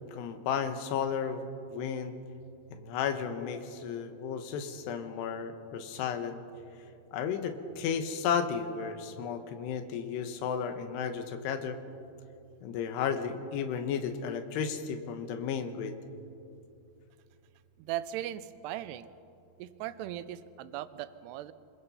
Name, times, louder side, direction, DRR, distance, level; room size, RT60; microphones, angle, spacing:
voice 1, 0.1-2.1 2.7-6.4 7.1-11.8 12.6-16.0, left 7 dB, 90° left, 8 dB, 3.3 m, -33 dB
voice 2, 17.8-19.1 19.6-21.5, right 12 dB, 85° right, 13 dB, 2.8 m, -38 dB
25.0 x 21.5 x 5.6 m, 2.6 s
omnidirectional pair, 4.7 m